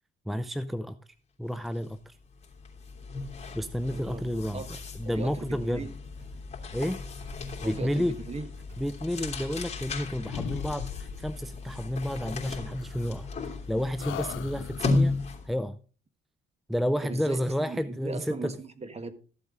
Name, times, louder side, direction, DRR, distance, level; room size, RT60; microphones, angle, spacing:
voice 1, 0.3-1.0 1.4-2.2 3.5-4.6 4.9-5.9 6.7-7.0 7.6-8.2 8.8-15.2 15.4-15.8 16.7-18.6, equal, ahead, 0.5 m, -31 dB
sound 1, 1.7-1.8 2.2-15.6, left 3 dB, 35° left, 3.1 m, -35 dB
sound 2, 4.2-12.2, right 3 dB, 65° right, 4.1 m, -56 dB
voice 2, 5.0-5.9 7.6-8.5 17.0-19.1, right 3 dB, 30° right, 1.4 m, -38 dB
sound 3, 9.1-10.0 10.2-11.4 12.8-13.6 14.0-15.2, left 9 dB, 80° left, 0.9 m, -40 dB
14.0 x 7.7 x 3.8 m
cardioid pair, 90°, 20 cm